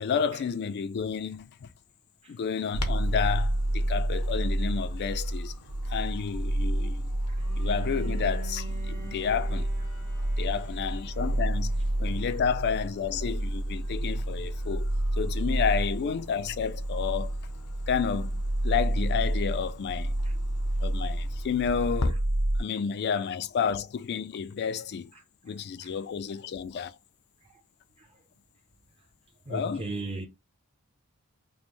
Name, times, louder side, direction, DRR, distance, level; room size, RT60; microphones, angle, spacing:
voice 1, 0.0-1.7 2.3-5.5 5.9-7.1 7.6-9.7 10.4-14.9 15.2-17.3 17.9-20.1 20.8-22.2 22.6-25.1 25.4-27.0 29.5-29.9, left 6 dB, 50° left, 0.3 m, -31 dB
Clock, 2.7-22.1, left 3 dB, 80° left, 0.7 m, -44 dB
sound 1, 2.7-22.6, right 1 dB, 75° right, 0.7 m, -29 dB
Bowed string instrument, 7.4-12.4, right 6 dB, 45° right, 1.4 m, -47 dB
voice 2, 29.5-30.3, right 2 dB, 25° right, 0.6 m, -37 dB
5.2 x 2.0 x 3.0 m
head